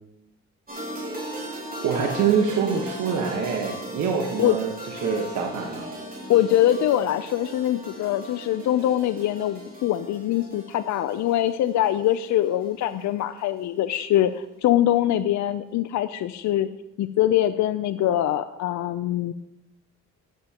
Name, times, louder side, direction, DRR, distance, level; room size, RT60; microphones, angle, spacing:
sound 1, 0.7-13.6, equal, 30° right, 3.8 m, -38 dB
voice 1, 1.8-5.9, right 6 dB, 75° right, 1 dB, 1.3 m, -25 dB
voice 2, 6.3-16.7 17.0-19.3, left 12 dB, 70° left, 10 dB, 0.5 m, -23 dB
13.5 x 9.1 x 2.9 m, 0.90 s
cardioid pair, 90°, 30 cm